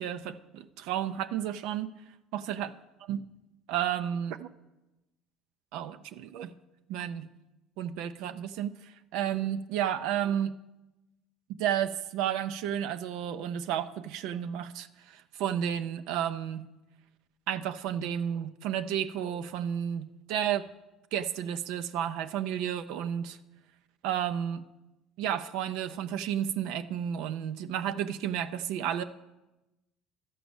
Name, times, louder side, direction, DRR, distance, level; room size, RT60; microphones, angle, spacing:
voice 1, 0.0-1.9 2.3-2.7 3.1-3.2 3.7-4.5 5.7-6.5 6.9-7.3 7.8-10.5 11.6-16.7 17.5-20.7 21.1-23.4 24.0-24.6 25.2-29.0, right 10 dB, 75° right, 10 dB, 0.5 m, -32 dB
12.5 x 5.0 x 7.0 m, 1.0 s
supercardioid pair, 90°, 0 cm